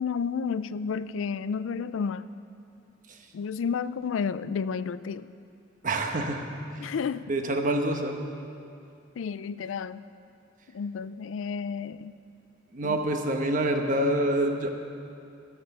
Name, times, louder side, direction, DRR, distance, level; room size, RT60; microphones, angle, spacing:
voice 1, 0.0-2.2 3.3-5.3 6.8-7.3 9.2-10.1 10.7-12.1 12.8-13.0, left 6 dB, 90° left, 15 dB, 0.4 m, -31 dB
voice 2, 5.8-6.9 7.3-8.2 12.7-14.7, right 1 dB, 45° right, 4 dB, 1.1 m, -27 dB
13.0 x 12.5 x 5.5 m, 2.5 s
head